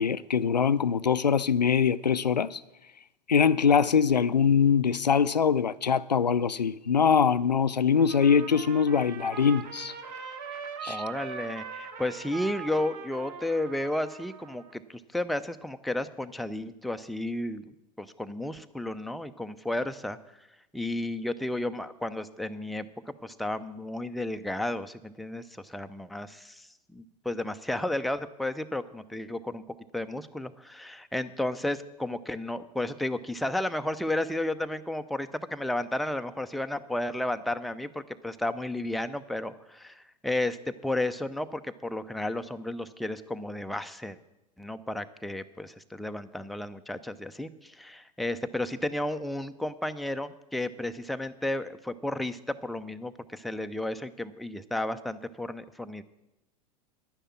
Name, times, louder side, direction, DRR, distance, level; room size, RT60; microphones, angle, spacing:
voice 1, 0.0-2.6 3.3-9.9 10.8-11.0, left 6 dB, 90° left, 0.4 m, -23 dB
Trumpet, 8.0-14.7, right 7 dB, 50° right, 1.5 m, -41 dB
voice 2, 10.9-17.6 18.0-20.5 20.7-29.6 29.9-44.2 44.6-56.0, left 1 dB, ahead, 0.5 m, -33 dB
10.5 x 10.0 x 7.2 m
figure-of-eight pair, 90°, 21 cm